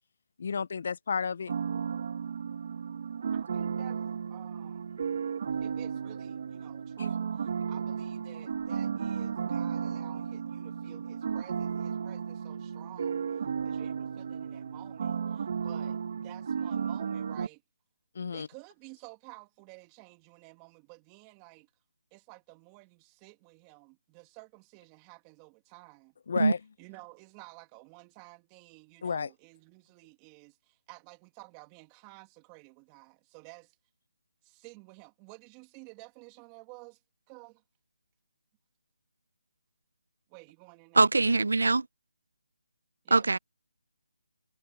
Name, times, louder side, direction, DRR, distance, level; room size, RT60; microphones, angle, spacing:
voice 1, 0.4-1.5 18.1-18.5 26.3-26.6 29.0-29.3, left 6 dB, 50° left, 0.5 m, -32 dB
sound 1, 1.5-17.5, right 6 dB, 50° right, 1.7 m, -34 dB
voice 2, 3.3-4.0 4.3-4.9 5.6-17.6 18.3-21.7 22.1-26.1 26.8-33.8 34.4-37.0 37.3-37.6 40.3-41.1 43.0-43.3, right 27 dB, 20° right, 2.3 m, -52 dB
voice 3, 40.9-41.9 43.1-43.4, right 3 dB, 85° right, 0.7 m, -22 dB
hypercardioid pair, 165°, 0 cm